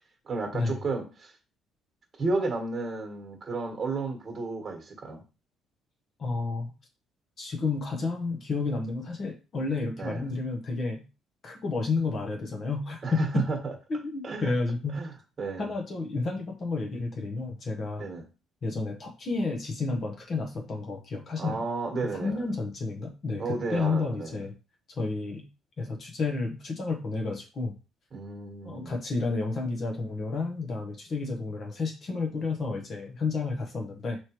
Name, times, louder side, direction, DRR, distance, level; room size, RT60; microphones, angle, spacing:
voice 1, 0.2-1.3 2.2-5.2 10.0-10.2 13.0-13.7 14.2-14.5 14.9-15.1 15.4-15.7 18.0-18.3 21.4-22.4 23.4-24.4 28.1-28.9, right 3 dB, 30° right, 2 dB, 1.4 m, -32 dB
voice 2, 6.2-6.7 7.4-11.0 11.4-13.4 13.9-15.0 15.6-18.0 18.6-21.6 22.0-24.5 25.0-25.4 25.8-27.7 28.6-34.2, left 3 dB, 40° left, 3 dB, 0.9 m, -31 dB
4.8 x 3.0 x 3.0 m, 0.31 s
cardioid pair, 130°, 0 cm